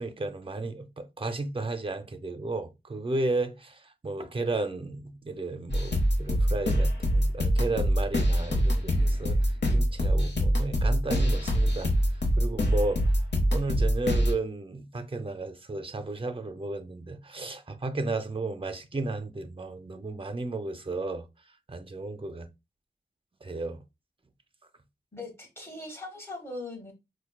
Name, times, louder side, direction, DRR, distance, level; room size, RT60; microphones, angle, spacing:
voice 1, 0.0-11.9 12.4-13.1 13.5-21.2 21.7-22.5 23.4-23.8, right 2 dB, 30° right, 0.5 m, -33 dB
sound 1, 5.7-14.3, equal, 75° left, 0.9 m, -24 dB
voice 2, 25.1-26.9, left 2 dB, 15° left, 1.4 m, -40 dB
4.4 x 2.2 x 2.3 m
wide cardioid pair, 55°, 18 cm